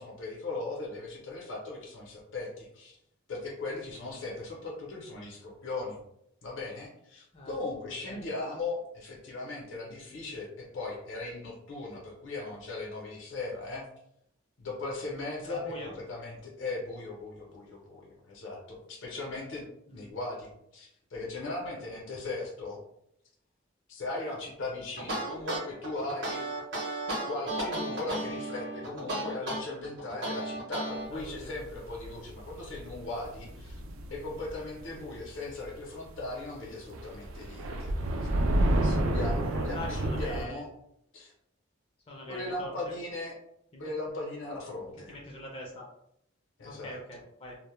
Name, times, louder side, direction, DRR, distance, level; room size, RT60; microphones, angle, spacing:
voice 1, 0.0-3.0 3.3-6.0 6.4-13.8 14.6-22.8 23.9-26.5 27.2-33.8 34.1-38.3 38.8-40.7 41.1-41.3 42.3-43.4 43.8-45.2 46.6-47.0, left 2 dB, 70° left, -2 dB, 0.6 m, -38 dB
voice 2, 15.4-16.0 19.9-20.1 31.1-31.5 39.6-40.6 42.1-42.9 43.7-43.8 45.1-45.9 46.6-47.6, equal, 30° left, -1 dB, 0.4 m, -42 dB
sound 1, 25.0-31.1, right 1 dB, 60° right, 0.7 m, -34 dB
sound 2, 31.2-35.8 36.1-36.2 36.7-40.5, right 1 dB, 85° right, 0.3 m, -31 dB
2.1 x 2.1 x 3.0 m, 0.77 s
head